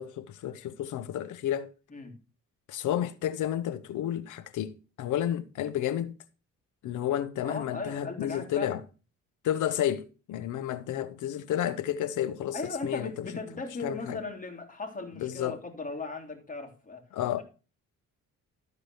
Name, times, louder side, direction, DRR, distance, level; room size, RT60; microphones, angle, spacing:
voice 1, 0.0-1.7 2.7-6.2 6.8-8.8 9.4-13.3 13.8-14.2 15.2-15.6 17.1-17.4, left 11 dB, 80° left, 1.0 m, -31 dB
voice 2, 7.4-8.7 12.5-17.0, left 3 dB, 25° left, 3.3 m, -37 dB
13.5 x 5.0 x 6.3 m
cardioid pair, 90°, 30 cm